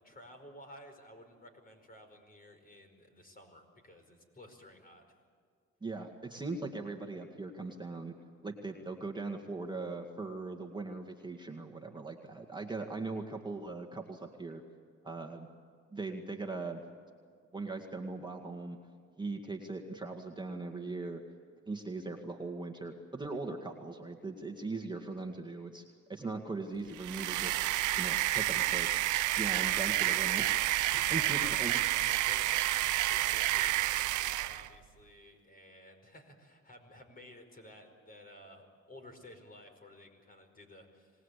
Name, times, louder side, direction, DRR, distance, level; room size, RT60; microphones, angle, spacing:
voice 1, 0.0-5.0 30.9-41.1, left 1 dB, 30° left, 5 dB, 5.1 m, -54 dB
voice 2, 5.8-8.2 8.4-14.6 15.0-15.5 15.9-16.8 17.5-18.8 19.2-21.2 21.7-25.8 26.1-27.6 28.0-28.9 29.4-30.7 31.1-31.8, right 3 dB, 15° right, 2 dB, 2.1 m, -40 dB
sound 1, 26.9-34.7, right 15 dB, 85° right, 0.7 m, -30 dB
26.5 x 19.5 x 8.4 m, 2.1 s
cardioid pair, 90°, 30 cm